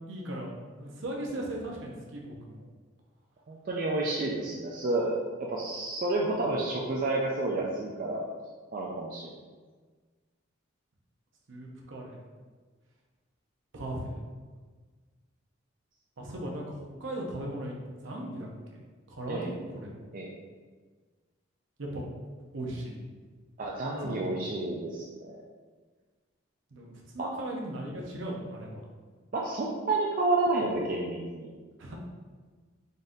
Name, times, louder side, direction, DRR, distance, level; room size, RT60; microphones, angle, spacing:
voice 1, 0.1-0.5 0.8-2.7 11.5-12.2 13.7-14.2 16.2-17.8 18.0-18.8 19.1-19.9 21.8-22.1 22.5-23.0 24.0-24.4 26.7-28.8 31.8-32.0, right 1 dB, 65° right, -1 dB, 0.8 m, -37 dB
voice 2, 3.5-8.2 8.7-9.3 19.3-19.5 20.1-20.3 23.6-25.3 27.2-27.3 29.3-31.5, right 2 dB, 45° right, -3 dB, 0.4 m, -30 dB
4.0 x 3.6 x 2.6 m, 1.4 s
head